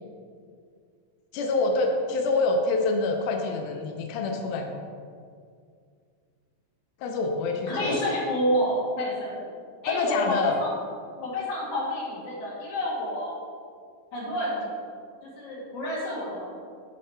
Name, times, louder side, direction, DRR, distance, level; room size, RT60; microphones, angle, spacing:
voice 1, 1.3-4.7 7.0-8.0 9.9-10.6, left 3 dB, 85° left, 3 dB, 1.8 m, -26 dB
voice 2, 7.7-9.5 9.8-10.7 11.2-13.4 14.1-14.7 15.2-16.5, equal, 55° left, -6 dB, 3.1 m, -29 dB
8.7 x 5.5 x 4.3 m, 2.2 s
omnidirectional pair, 4.3 m